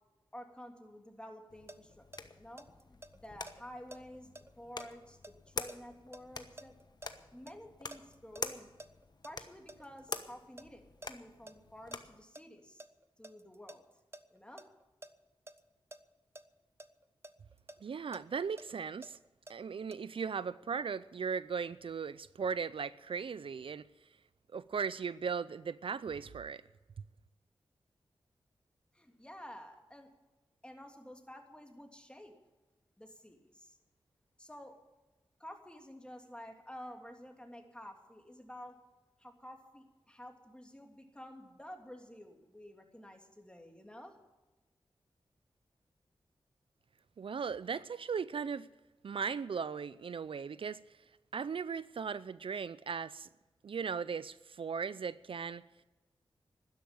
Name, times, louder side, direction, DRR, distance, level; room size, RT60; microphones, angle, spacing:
voice 1, 0.3-6.8 7.3-8.7 9.2-12.8 13.2-13.8 14.3-14.7 28.9-30.1 30.6-32.3 33.0-33.8 34.4-34.7 35.4-38.7 39.2-44.2, equal, 10° left, 3.0 m, -51 dB
sound 1, 1.5-12.2, left 3 dB, 45° left, 1.2 m, -46 dB
sound 2, 1.7-7.5 7.9-10.3 10.6-10.7 11.0-11.5 11.9-15.1 15.5-15.6 15.9-16.0 16.4-16.5 16.8-19.5 19.9-20.0, right 2 dB, 25° right, 1.0 m, -51 dB
voice 2, 17.8-19.2 19.5-23.9 24.5-26.6 27.0-27.1 47.2-48.7 49.0-50.8 51.3-53.3 53.6-55.6, right 6 dB, 65° right, 0.5 m, -37 dB
12.5 x 10.5 x 9.1 m
cardioid pair, 50°, 10 cm